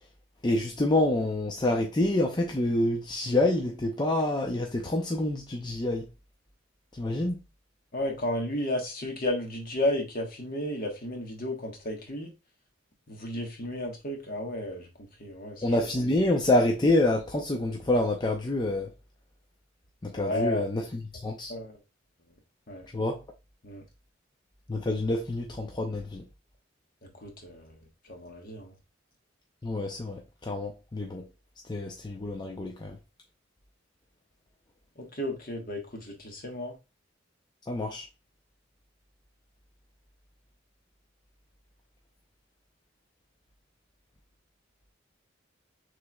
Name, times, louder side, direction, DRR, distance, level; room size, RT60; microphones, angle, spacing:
voice 1, 0.4-6.1 6.9-7.4 15.6-18.9 20.0-21.5 22.9-23.2 24.7-26.2 29.6-31.2 31.7-33.0 37.7-38.0, left 1 dB, 25° left, 0.6 m, -27 dB
voice 2, 7.9-12.3 13.1-14.9 15.2-15.6 20.1-20.7 21.5-21.7 22.7-22.9 23.6-23.8 27.0-27.8 28.0-28.7 35.0-36.7, left 1 dB, 50° left, 1.3 m, -33 dB
6.5 x 3.2 x 2.3 m
head